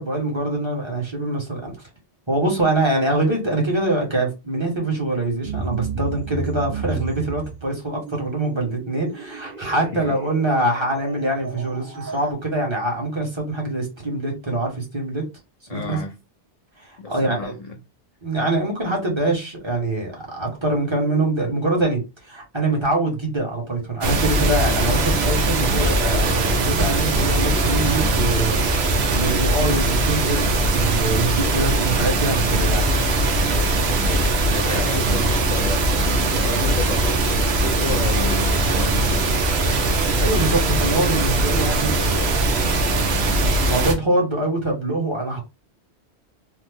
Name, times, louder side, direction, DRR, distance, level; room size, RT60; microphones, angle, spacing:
voice 1, 0.0-1.7 2.3-15.2 15.7-16.0 16.8-17.5 18.2-28.6 29.1-32.9 34.7-34.8 40.2-42.6 43.5-45.4, right 2 dB, 25° right, 1.0 m, -24 dB
sound 1, 5.4-12.3, right 5 dB, 50° right, 1.3 m, -33 dB
voice 2, 15.7-16.1 17.0-17.8 34.5-39.5, left 3 dB, 65° left, 0.4 m, -32 dB
sound 2, 24.0-43.9, right 2 dB, 70° right, 0.9 m, -20 dB
3.2 x 2.0 x 3.4 m
omnidirectional pair, 1.2 m